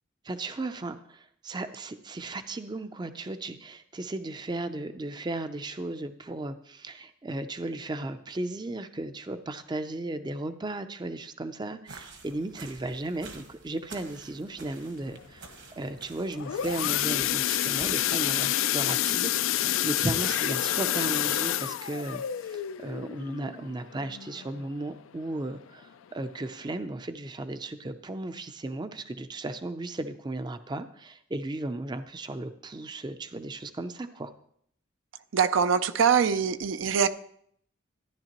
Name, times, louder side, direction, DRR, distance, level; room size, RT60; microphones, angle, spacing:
voice 1, 0.2-34.3, right 2 dB, 20° right, 10 dB, 0.4 m, -35 dB
sound 1, 11.9-18.4, right 3 dB, 60° right, 1.4 m, -49 dB
sound 2, 16.2-24.9 25.3-25.5 25.8-25.9 26.4-26.5, left 12 dB, 85° left, 0.4 m, -28 dB
voice 2, 35.3-37.1, right 7 dB, 75° right, 12 dB, 0.5 m, -23 dB
13.5 x 10.5 x 2.9 m, 0.67 s
head